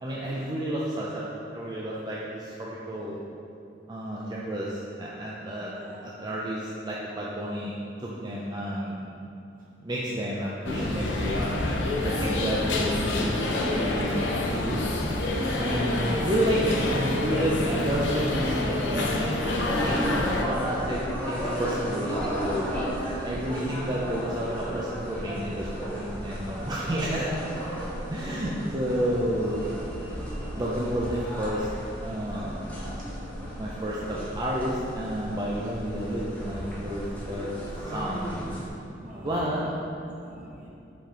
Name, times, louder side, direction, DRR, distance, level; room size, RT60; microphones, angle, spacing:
voice 1, 0.0-3.2 3.9-5.7 6.0-9.0 9.8-11.4 11.9-13.3 13.8-14.2 14.5-14.8 15.6-20.0 20.4-20.6 20.9-22.7 23.3-27.3 28.1-29.8 30.5-31.7 32.0-32.7 33.6-37.5 37.8-38.4 39.0-39.6, equal, 25° right, -6 dB, 0.5 m, -30 dB
voice 2, 5.7-6.0 8.9-9.1 12.2-12.4 21.7-22.0 22.5-22.8 33.0-33.5 39.0-39.8 40.2-40.7, equal, 50° right, -5 dB, 1.4 m, -44 dB
sound 1, 10.6-20.4, left 2 dB, 85° left, 0.7 m, -27 dB
sound 2, 19.6-38.7, equal, 10° left, 1.2 m, -34 dB
5.4 x 5.2 x 3.8 m, 2.6 s
head